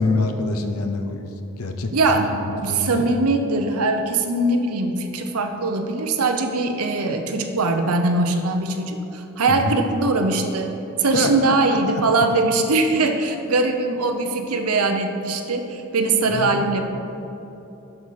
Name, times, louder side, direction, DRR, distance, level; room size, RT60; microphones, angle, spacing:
voice 1, 0.0-2.3 2.6-3.1 9.5-9.8 11.1-11.3 11.6-12.0 16.3-16.6, left 2 dB, 80° left, 6 dB, 0.8 m, -25 dB
voice 2, 1.9-10.7 11.0-16.8, right 3 dB, 85° right, 6 dB, 0.8 m, -21 dB
8.0 x 5.6 x 6.4 m, 3.0 s
head